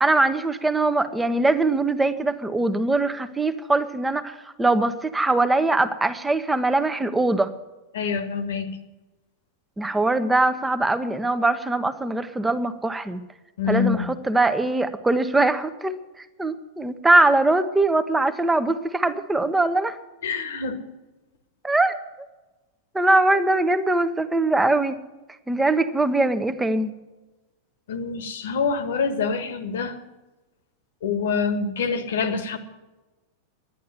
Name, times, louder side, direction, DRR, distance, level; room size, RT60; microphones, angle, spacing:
voice 1, 0.0-7.5 9.8-13.2 13.7-16.0 16.4-20.0 21.6-22.0 22.9-25.0 25.5-26.9, right 2 dB, 10° right, 11 dB, 1.0 m, -22 dB
voice 2, 7.9-8.8 13.6-14.1 20.2-20.8 27.9-30.0 31.0-32.6, left 5 dB, 60° left, 11 dB, 1.4 m, -26 dB
11.0 x 10.5 x 9.5 m, 1.1 s
figure-of-eight pair, 90°, 0 cm